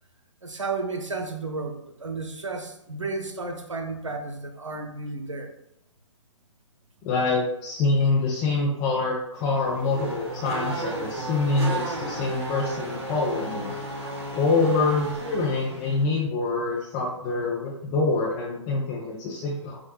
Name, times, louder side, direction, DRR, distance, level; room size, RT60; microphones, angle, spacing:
voice 1, 0.4-5.5, right 3 dB, 75° right, 4 dB, 0.8 m, -33 dB
voice 2, 7.0-13.8 14.3-19.8, left 3 dB, 20° left, -4 dB, 0.6 m, -25 dB
Race car auto racing / Accelerating revving vroom, 9.3-16.0, right 1 dB, 55° right, 1.2 m, -33 dB
5.8 x 2.3 x 2.8 m, 0.78 s
figure-of-eight pair, 125°, 16 cm